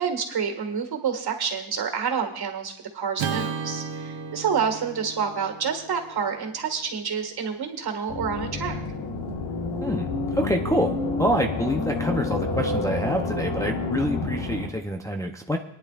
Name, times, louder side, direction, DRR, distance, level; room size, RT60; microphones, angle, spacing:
voice 1, 0.0-8.8, right 6 dB, 55° right, 4 dB, 2.0 m, -28 dB
Acoustic guitar / Strum, 3.2-7.6, right 6 dB, 85° right, 1.2 m, -35 dB
sound 1, 8.1-14.7, left 3 dB, 75° left, 1.8 m, -29 dB
voice 2, 9.8-15.6, equal, 5° left, 1 dB, 0.7 m, -27 dB
22.0 x 10.0 x 2.5 m, 0.75 s
cardioid pair, 120°, 46 cm